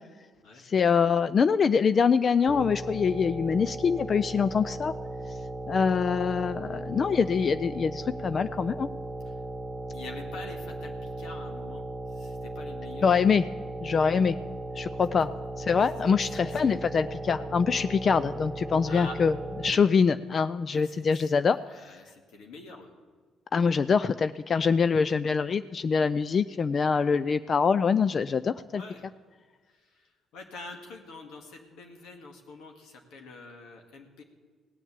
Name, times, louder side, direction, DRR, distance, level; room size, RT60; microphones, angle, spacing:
voice 1, 0.7-4.9 5.7-8.9 13.0-13.4 13.8-14.4 14.8-15.3 15.6-19.3 19.6-21.6 23.5-28.8, left 6 dB, 45° left, 13 dB, 0.4 m, -24 dB
sound 1, 2.5-19.7, right 2 dB, 25° right, 1.4 m, -37 dB
voice 2, 9.9-13.1 16.3-16.8 18.8-19.2 20.6-21.3 21.6-22.9 28.7-29.1 29.7-34.2, left 3 dB, 80° left, 2 dB, 1.8 m, -46 dB
17.5 x 7.3 x 8.2 m, 1.5 s
cardioid pair, 80°, 0 cm